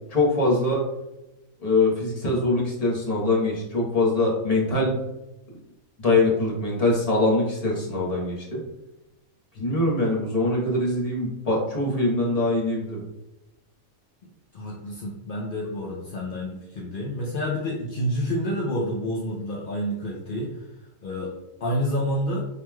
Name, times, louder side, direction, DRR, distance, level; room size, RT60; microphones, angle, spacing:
voice 1, 0.1-0.8 1.6-5.0 6.0-8.6 9.5-13.0, left 2 dB, 30° left, -4 dB, 1.0 m, -23 dB
voice 2, 14.5-22.4, equal, 60° left, -4 dB, 0.6 m, -29 dB
5.0 x 3.0 x 2.3 m, 0.96 s
omnidirectional pair, 1.5 m